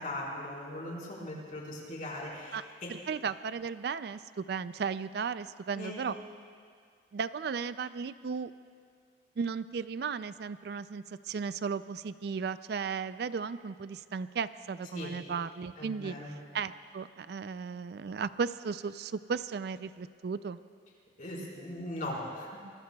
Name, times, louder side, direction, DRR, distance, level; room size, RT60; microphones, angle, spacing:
voice 1, 0.0-2.9 5.8-6.1 14.9-15.1 15.8-16.3 21.2-22.6, left 1 dB, 45° left, -5 dB, 4.5 m, -39 dB
voice 2, 2.9-6.2 7.1-8.5 9.4-20.6, right 5 dB, 60° right, 14 dB, 0.3 m, -35 dB
25.0 x 21.5 x 2.3 m, 2.1 s
head